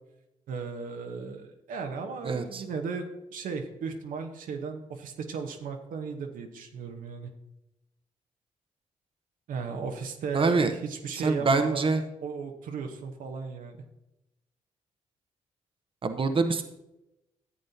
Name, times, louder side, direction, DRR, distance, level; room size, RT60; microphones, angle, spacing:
voice 1, 0.5-7.3 9.5-11.9 12.2-13.8, right 5 dB, 70° right, 4 dB, 0.9 m, -36 dB
voice 2, 2.2-2.6 10.3-10.7 11.2-12.0 16.0-16.6, right 4 dB, 40° right, 8 dB, 0.8 m, -25 dB
11.0 x 7.7 x 2.8 m, 0.91 s
hypercardioid pair, 45°, 14 cm